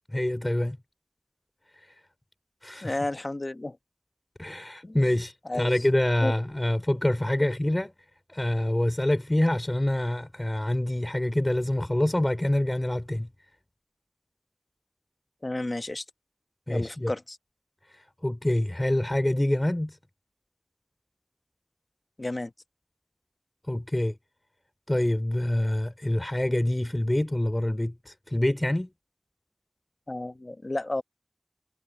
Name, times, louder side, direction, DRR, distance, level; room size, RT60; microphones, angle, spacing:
voice 1, 0.1-0.8 1.7-2.0 2.6-3.0 4.4-7.9 8.3-13.3 16.7-17.1 17.9-20.0 23.7-24.2 24.9-28.9, left 1 dB, 30° left, 3.4 m, -26 dB
voice 2, 2.8-3.8 4.8-5.0 5.5-5.7 6.2-6.3 15.4-16.0 16.7-17.4 22.2-22.5 30.1-31.0, left 2 dB, 70° left, 1.1 m, -31 dB
wide cardioid pair, 40°, 0 cm